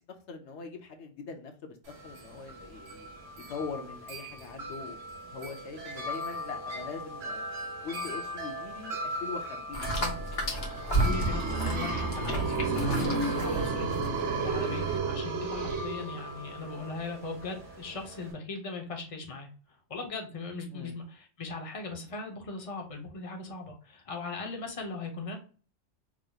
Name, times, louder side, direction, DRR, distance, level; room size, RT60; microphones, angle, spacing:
voice 1, 0.3-1.8 2.0-3.1 3.5-7.4 7.8-9.9 20.7-20.9, left 5 dB, 80° left, 5 dB, 1.0 m, -42 dB
Wind chime, 1.8-18.3, equal, 65° right, 1.5 m, -40 dB
sound 1, 9.7-15.0, right 1 dB, 60° left, 1.3 m, -33 dB
sound 2, 10.7-16.6, right 4 dB, 85° right, 1.0 m, -31 dB
voice 2, 10.9-19.5 19.9-25.4, left 3 dB, 35° left, 3 dB, 0.9 m, -39 dB
4.9 x 3.0 x 2.3 m, 0.37 s
omnidirectional pair, 1.2 m